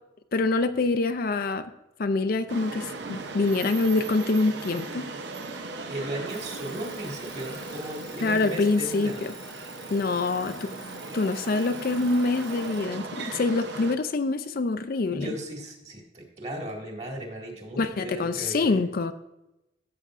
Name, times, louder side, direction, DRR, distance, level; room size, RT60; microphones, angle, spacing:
voice 1, 0.3-1.7 2.0-5.1 8.2-9.3 9.9-10.7 11.1-15.3 17.8-19.1, left 3 dB, 55° left, 10 dB, 0.4 m, -25 dB
sound 1, 2.5-13.9, right 3 dB, 70° right, 0.7 m, -38 dB
voice 2, 5.5-9.2 15.1-18.8, right 1 dB, 35° right, 0 dB, 2.0 m, -36 dB
Alarm, 6.3-13.0, left 1 dB, 5° right, 1.0 m, -48 dB
13.5 x 7.0 x 2.5 m, 0.91 s
head